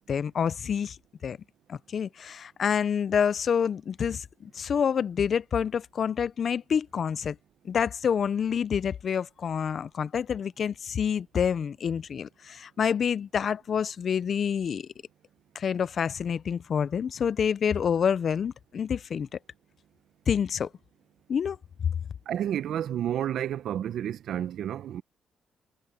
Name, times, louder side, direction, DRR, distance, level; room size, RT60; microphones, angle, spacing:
voice 1, 0.1-1.0 1.2-1.4 1.7-7.4 7.6-14.9 15.5-19.3 20.3-20.7 21.3-21.6, left 7 dB, 60° left, 0.7 m, -27 dB
voice 2, 22.3-25.0, right 10 dB, 75° right, 0.9 m, -30 dB
supercardioid pair, 55°, 0 cm